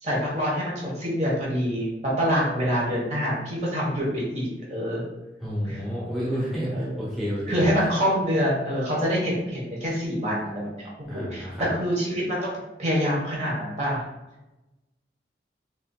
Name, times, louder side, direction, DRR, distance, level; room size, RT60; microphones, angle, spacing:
voice 1, 0.0-5.0 5.6-5.8 6.7-7.0 7.5-12.5 12.8-14.0, equal, 40° right, -5 dB, 1.2 m, -26 dB
voice 2, 5.4-7.7 11.1-11.7, equal, ahead, -8 dB, 1.0 m, -30 dB
5.9 x 2.7 x 2.3 m, 1.0 s
head